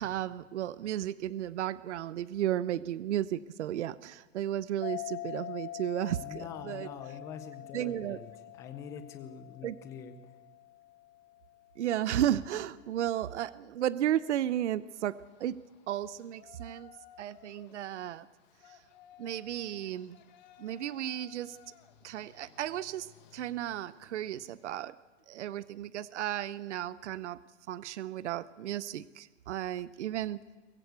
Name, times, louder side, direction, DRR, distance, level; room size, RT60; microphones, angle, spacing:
voice 1, 0.0-6.9 7.7-8.2 9.6-9.8 11.8-15.6 15.9-16.9 17.2-18.3 18.7-18.8 19.2-20.2 20.6-21.6 22.0-24.9 25.3-27.4 27.7-30.4, right 11 dB, 65° right, 18 dB, 0.9 m, -34 dB
sound 1, 4.8-11.9, left 14 dB, 90° left, 3.3 m, -44 dB
voice 2, 6.2-8.3 8.6-10.2, left 7 dB, 10° left, 10 dB, 0.6 m, -44 dB
Yell, 14.8-25.0, left 9 dB, 35° left, 1.7 m, -59 dB
23.0 x 19.0 x 8.2 m, 1.3 s
supercardioid pair, 175°, 38 cm